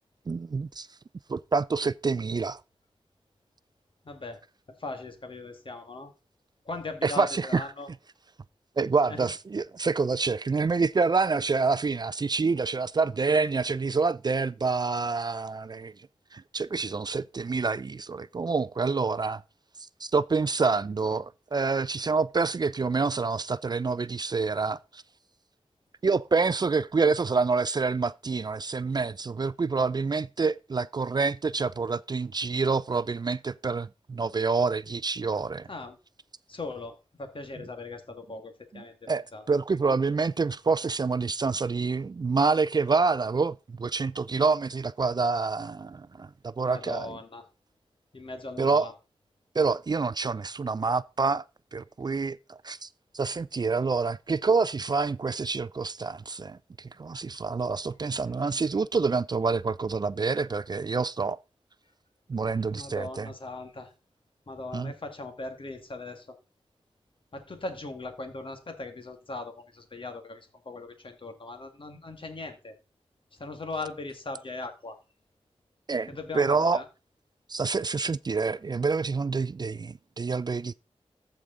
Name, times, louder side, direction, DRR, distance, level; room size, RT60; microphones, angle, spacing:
voice 1, 0.3-0.9 1.3-2.6 7.0-7.7 8.8-15.9 16.3-19.4 20.0-25.0 26.0-35.7 38.7-47.2 48.6-48.9 49.6-51.4 51.7-52.9 53.1-61.4 62.3-63.3 64.7-64.9 75.9-76.8 77.5-80.7, right 4 dB, 40° right, 0.3 m, -27 dB
voice 2, 4.0-4.4 4.8-6.1 6.7-7.9 9.1-9.3 35.7-36.0 36.5-39.4 46.7-47.4 48.1-48.9 62.7-63.9 64.5-66.3 67.3-72.7 73.4-75.0 76.1-76.9, left 3 dB, 55° left, 1.8 m, -39 dB
14.0 x 4.9 x 3.8 m
wide cardioid pair, 70°, 11 cm